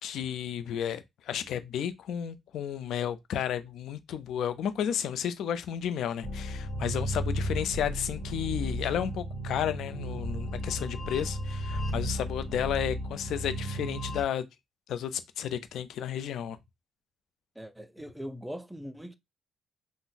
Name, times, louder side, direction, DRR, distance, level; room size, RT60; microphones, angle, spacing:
voice 1, 0.0-14.4 14.9-16.6, left 9 dB, 75° left, 0.4 m, -32 dB
sound 1, 6.2-14.2, equal, 55° left, 1.2 m, -34 dB
voice 2, 17.6-19.2, equal, 5° right, 0.4 m, -41 dB
2.5 x 2.0 x 3.8 m
cardioid pair, 90°, 0 cm